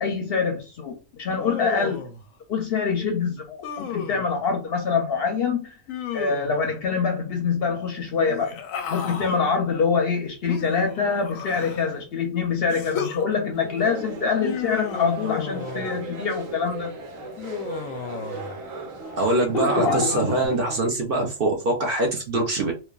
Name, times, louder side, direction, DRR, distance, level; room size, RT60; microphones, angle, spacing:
voice 1, 0.0-2.1 2.5-5.8 6.1-8.6 8.9-17.0 19.5-20.6, left 5 dB, 60° left, 0.7 m, -25 dB
Human voice, 1.4-2.2 3.6-4.3 5.9-6.7 8.2-9.4 10.5-12.0 12.7-13.2 14.4-16.0 17.4-18.6 19.6-20.5, left 7 dB, 90° left, 1.0 m, -33 dB
sound 1, 13.5-20.9, right 3 dB, 90° right, 1.2 m, -37 dB
voice 2, 19.2-22.7, right 2 dB, 55° right, 0.8 m, -23 dB
3.2 x 2.2 x 2.3 m
omnidirectional pair, 1.4 m